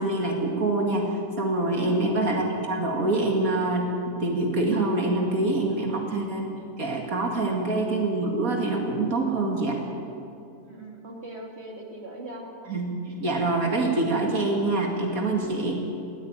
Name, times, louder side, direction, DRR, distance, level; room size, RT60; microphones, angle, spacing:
voice 1, 0.0-6.5 6.8-9.8 12.7-15.8, right 2 dB, 80° right, 1 dB, 2.6 m, -25 dB
voice 2, 1.7-2.2 5.8-6.1 7.4-7.6 10.6-12.5, right 1 dB, 50° right, 0 dB, 2.8 m, -40 dB
20.0 x 15.5 x 8.9 m, 2.6 s
omnidirectional pair, 1.5 m